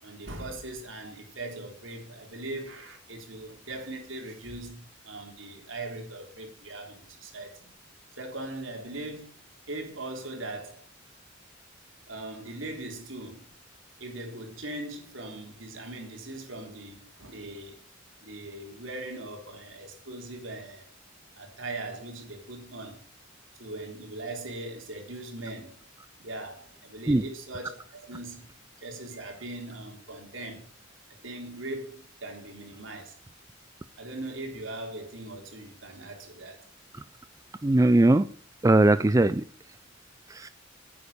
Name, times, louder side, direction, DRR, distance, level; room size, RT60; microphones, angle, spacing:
voice 1, 0.0-7.7 8.2-9.3 9.7-10.9 12.1-13.5 14.0-17.8 18.2-20.8 21.4-23.0 23.6-25.8 26.2-28.5 28.8-30.7 31.2-33.2 34.0-36.7, right 2 dB, 80° right, 3.7 m, -40 dB
voice 2, 37.6-38.3 38.6-39.4 40.3-40.5, right 2 dB, 15° right, 0.4 m, -20 dB
9.7 x 8.7 x 6.9 m
head